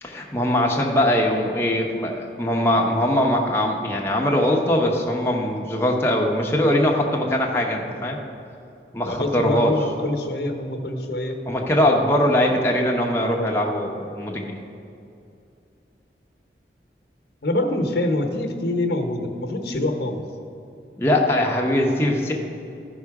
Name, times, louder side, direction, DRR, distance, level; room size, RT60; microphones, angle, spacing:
voice 1, 0.0-8.2 8.9-9.7 11.5-14.6 21.0-22.3, left 1 dB, 15° left, 0 dB, 0.8 m, -21 dB
voice 2, 9.0-11.4 17.4-20.2, left 1 dB, 65° left, 4 dB, 1.0 m, -25 dB
13.0 x 5.5 x 4.8 m, 2.6 s
head